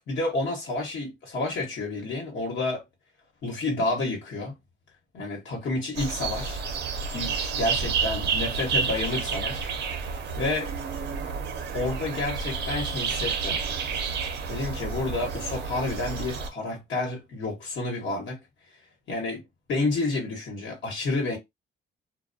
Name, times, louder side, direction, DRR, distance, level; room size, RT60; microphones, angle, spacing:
voice 1, 0.1-2.8 3.4-4.5 5.1-6.6 7.1-9.7 10.4-10.7 11.7-13.6 14.5-18.4 19.1-19.4 19.7-21.4, left 2 dB, 65° left, 1.1 m, -30 dB
sound 1, 5.9-16.5, right 5 dB, 60° right, 0.6 m, -30 dB
2.2 x 2.2 x 2.5 m
cardioid pair, 90°, 20 cm